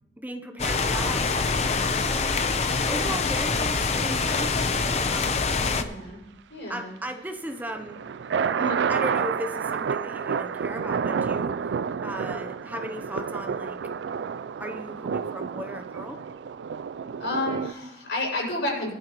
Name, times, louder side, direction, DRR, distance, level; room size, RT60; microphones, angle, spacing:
voice 1, 0.2-2.6 2.8-5.5 6.7-8.0 8.6-11.5 12.0-13.8 14.6-16.2, right 1 dB, 10° right, 5 dB, 0.7 m, -36 dB
sound 1, 0.6-5.8, left 4 dB, 35° left, 0.7 m, -25 dB
voice 2, 5.6-6.2 6.5-6.9 8.6-8.8 17.2-18.9, left 2 dB, 90° left, -2 dB, 6.0 m, -30 dB
sound 2, 7.6-17.7, right 6 dB, 80° right, 0.4 m, -29 dB
20.0 x 12.0 x 3.0 m, 0.95 s
head